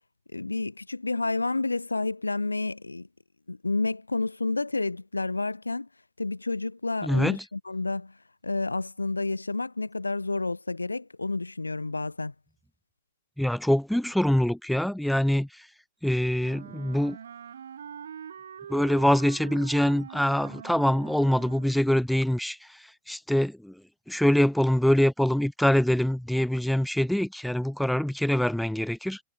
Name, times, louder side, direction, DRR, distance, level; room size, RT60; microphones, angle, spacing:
voice 1, 0.3-3.1 3.5-5.9 6.2-8.1 8.4-12.3, left 3 dB, 80° left, 4.3 m, -30 dB
voice 2, 7.0-7.4 13.4-15.5 16.0-17.2 18.7-22.6 23.1-23.7 24.1-29.2, equal, ahead, 0.8 m, -24 dB
Wind instrument woodwind instrument, 16.4-21.9, right 8 dB, 65° right, 2.2 m, -43 dB
figure-of-eight pair, 90°, 0 cm